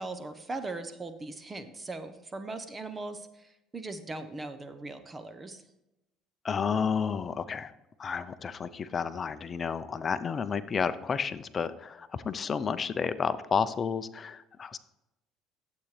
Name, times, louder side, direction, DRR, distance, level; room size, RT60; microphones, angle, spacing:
voice 1, 0.0-5.6, right 2 dB, 25° right, 10 dB, 0.9 m, -39 dB
voice 2, 6.4-7.7 8.0-14.8, left 6 dB, 35° left, 13 dB, 0.6 m, -31 dB
11.5 x 8.2 x 3.3 m, 0.91 s
supercardioid pair, 90°, 0 cm